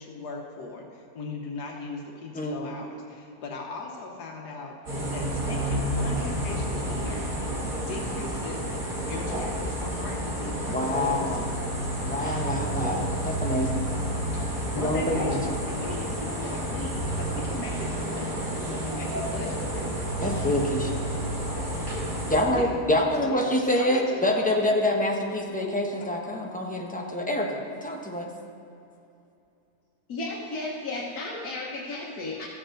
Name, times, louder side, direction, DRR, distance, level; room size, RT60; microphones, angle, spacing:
voice 1, 0.0-4.7 5.1-7.3 7.6-8.6 9.1-11.5 14.7-20.1 22.5-22.8 23.2-23.5 23.8-24.7 25.6-25.7, left 3 dB, 90° left, 0 dB, 1.6 m, -38 dB
voice 2, 2.3-2.7 10.7-11.5 12.0-13.8 14.7-15.4 20.2-21.0 22.3-28.3, left 1 dB, 5° left, -1 dB, 0.8 m, -26 dB
sound 1, 4.9-22.4, right 1 dB, 60° right, 3.5 m, -30 dB
voice 3, 30.1-32.5, left 2 dB, 70° left, -4 dB, 1.7 m, -34 dB
15.0 x 7.4 x 3.8 m, 2.7 s
omnidirectional pair, 1.7 m